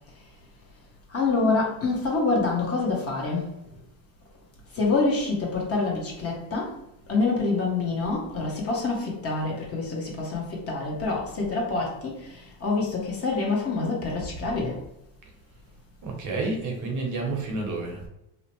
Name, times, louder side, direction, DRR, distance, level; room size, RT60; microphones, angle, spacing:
voice 1, 1.1-3.5 4.7-6.8 7.1-14.8, left 3 dB, 30° left, -2 dB, 0.9 m, -26 dB
voice 2, 16.0-18.1, right 3 dB, 40° right, 1 dB, 0.8 m, -30 dB
2.7 x 2.1 x 3.0 m, 0.85 s
supercardioid pair, 100°, 47 cm